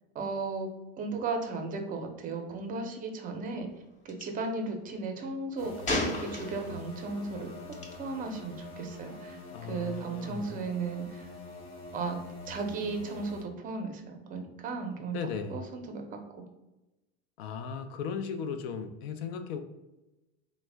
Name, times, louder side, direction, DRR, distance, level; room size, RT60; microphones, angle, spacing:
voice 1, 0.1-0.7 1.0-3.7 4.0-5.7 6.2-7.5 8.0-9.4 9.6-11.3 11.9-12.2 12.5-15.2 15.5-16.4, right 3 dB, 25° right, 5 dB, 0.5 m, -35 dB
Gunshot gunfire, 4.1-4.3 5.9-6.9 7.7-7.9, left 2 dB, 25° left, 0.6 m, -32 dB
sound 1, 5.6-13.4, left 2 dB, 55° left, 0.9 m, -46 dB
voice 2, 9.5-10.6 15.1-15.6 17.4-19.6, left 6 dB, 75° left, 7 dB, 0.5 m, -36 dB
3.4 x 2.1 x 3.2 m, 1.0 s
supercardioid pair, 125°, 31 cm